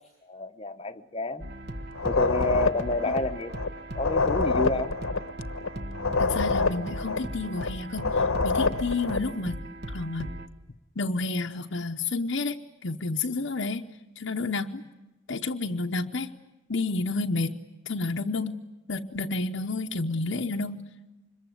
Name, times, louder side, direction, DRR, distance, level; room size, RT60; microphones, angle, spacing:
voice 1, 0.3-1.4 2.0-3.5 4.0-4.9, left 2 dB, 25° left, 9 dB, 0.9 m, -29 dB
sound 1, 1.4-10.5, right 1 dB, 50° right, 1.4 m, -38 dB
sound 2, 1.9-9.3, left 3 dB, 75° left, 1.1 m, -27 dB
voice 2, 6.2-9.6 9.9-10.3 11.0-13.9 14.2-14.8 15.3-16.3 16.7-17.5 17.9-18.6 18.9-20.8, left 3 dB, 60° left, 2 dB, 0.9 m, -30 dB
26.0 x 22.0 x 9.2 m, 1.0 s
head